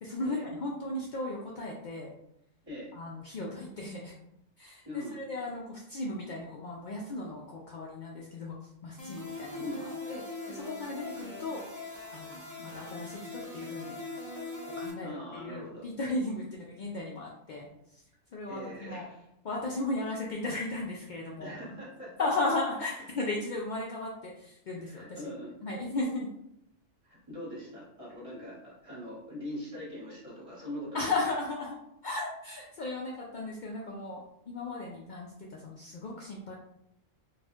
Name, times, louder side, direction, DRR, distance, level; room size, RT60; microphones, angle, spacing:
voice 1, 0.0-2.1 2.9-4.1 4.6-10.2 10.5-11.6 12.1-14.0 14.7-18.0 18.3-19.0 19.4-21.6 22.2-25.3 25.6-26.3 30.9-31.8 32.0-36.5, left 2 dB, 85° left, -2 dB, 0.4 m, -36 dB
voice 2, 4.8-5.2 9.6-9.9 15.0-15.8 18.5-19.2 21.4-22.1 24.8-25.5 27.0-31.1, equal, 25° right, -7 dB, 1.4 m, -42 dB
sound 1, 9.0-14.9, left 3 dB, 20° left, 0.7 m, -41 dB
4.2 x 2.5 x 2.4 m, 0.79 s
omnidirectional pair, 1.3 m